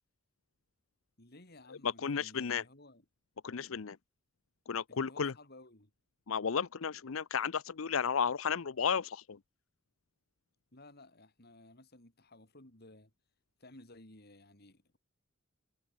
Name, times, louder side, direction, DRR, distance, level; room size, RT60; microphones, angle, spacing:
voice 1, 1.2-3.0 4.9-5.9 10.7-13.1 13.6-15.0, left 2 dB, 50° left, 4.3 m, -56 dB
voice 2, 1.8-2.6 3.4-4.0 4.7-5.3 6.3-9.2, left 6 dB, 85° left, 0.7 m, -33 dB
head